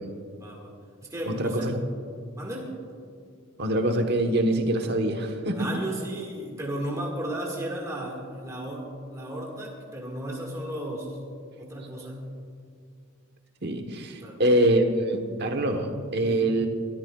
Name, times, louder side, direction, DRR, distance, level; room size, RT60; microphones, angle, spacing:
voice 1, 0.4-0.7 1.1-1.7 2.4-2.7 5.6-11.2 11.6-12.2 14.2-14.4 16.2-16.4, right 1 dB, 15° right, -2 dB, 1.8 m, -34 dB
voice 2, 1.3-1.8 3.6-5.7 13.6-16.7, right 1 dB, 50° right, 4 dB, 1.2 m, -24 dB
23.5 x 13.0 x 2.4 m, 2.3 s
head